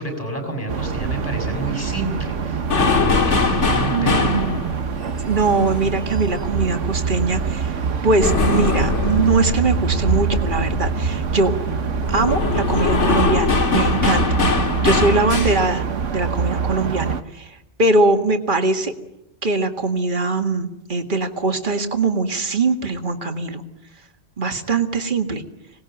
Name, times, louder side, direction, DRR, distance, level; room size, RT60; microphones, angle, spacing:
voice 1, 0.0-4.3, right 1 dB, 30° left, 4 dB, 6.5 m, -29 dB
sound 1, 0.7-17.2, right 6 dB, 80° right, 1.5 m, -25 dB
sound 2, 2.6-6.9 7.2-15.8, left 3 dB, 75° left, 2.1 m, -22 dB
voice 2, 3.9-4.6 5.3-11.5 12.1-14.3 14.8-15.9 16.1-17.5 17.8-18.9 19.4-23.6 24.4-25.4, right 3 dB, 40° right, 5 dB, 2.1 m, -21 dB
26.0 x 19.5 x 9.1 m, 0.93 s
omnidirectional pair, 1.2 m